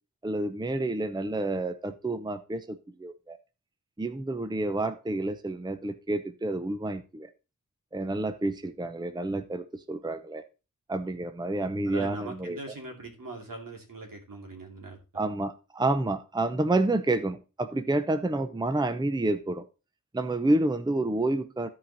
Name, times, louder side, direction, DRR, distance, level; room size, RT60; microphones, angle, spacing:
voice 1, 0.2-3.4 4.0-7.3 7.9-10.4 10.9-12.6 15.1-19.6 20.1-21.7, right 2 dB, 15° right, 10 dB, 0.7 m, -29 dB
voice 2, 11.8-15.0, right 2 dB, 75° right, 1 dB, 2.6 m, -41 dB
13.0 x 4.9 x 4.1 m, 0.31 s
wide cardioid pair, 75°, 34 cm